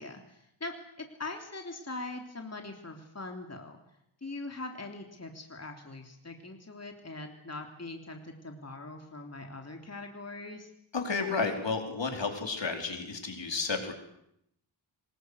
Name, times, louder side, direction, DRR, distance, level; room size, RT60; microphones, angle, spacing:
voice 1, 0.0-3.8 4.2-10.7, left 2 dB, 30° left, 3 dB, 3.3 m, -42 dB
voice 2, 10.9-13.9, left 4 dB, 65° left, 4 dB, 4.5 m, -32 dB
24.5 x 21.0 x 8.2 m, 0.77 s
wide cardioid pair, 75°, 48 cm